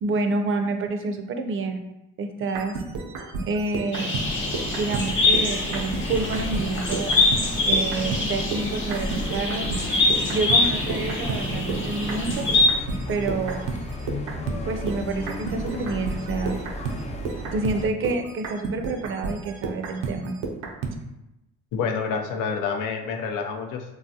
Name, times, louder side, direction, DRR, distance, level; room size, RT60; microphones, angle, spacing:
voice 1, 0.0-1.8 2.2-2.7 3.5-4.2 4.8-7.1 7.7-9.7 10.3-12.5 13.1-13.7 14.6-16.6 17.5-20.3, right 3 dB, 40° right, 5 dB, 0.4 m, -28 dB
sound 1, 2.4-8.3 8.5-21.0, right 4 dB, 90° right, 0.5 m, -32 dB
sound 2, 3.9-12.7, left 2 dB, 35° left, 0.9 m, -24 dB
sound 3, 4.2-17.9, left 1 dB, 20° left, 0.3 m, -35 dB
voice 2, 21.7-23.8, left 5 dB, 70° left, 3 dB, 0.5 m, -28 dB
3.2 x 2.3 x 2.6 m, 0.93 s
supercardioid pair, 75°, 33 cm